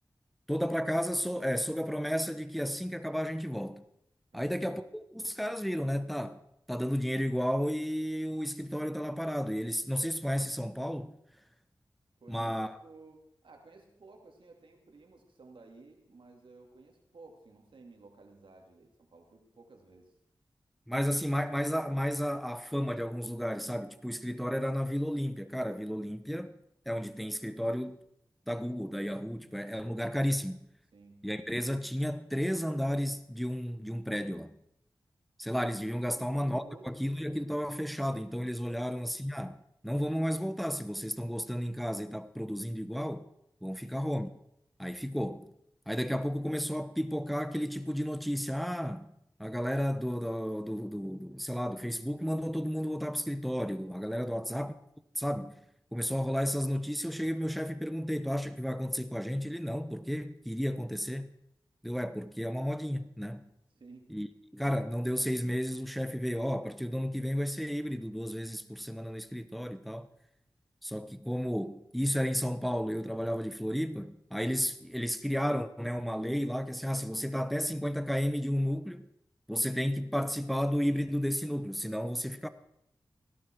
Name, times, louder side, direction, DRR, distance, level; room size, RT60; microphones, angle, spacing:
voice 1, 0.5-3.9 4.3-6.4 6.7-11.1 12.3-12.8 20.9-26.5 26.9-28.0 28.5-30.6 31.2-34.6 35.4-43.3 43.6-44.3 44.8-45.5 45.9-49.1 49.4-54.7 55.2-55.6 55.9-61.3 61.8-63.5 64.1-64.3 64.5-70.1 70.8-79.0 79.5-82.5, equal, ahead, 1.0 m, -32 dB
voice 2, 4.3-4.7 12.2-20.1 30.9-31.3 36.0-37.2 43.8-44.0 54.2-54.5 63.7-64.2, right 3 dB, 80° right, 2.5 m, -55 dB
16.5 x 11.5 x 4.5 m
cardioid pair, 45°, 8 cm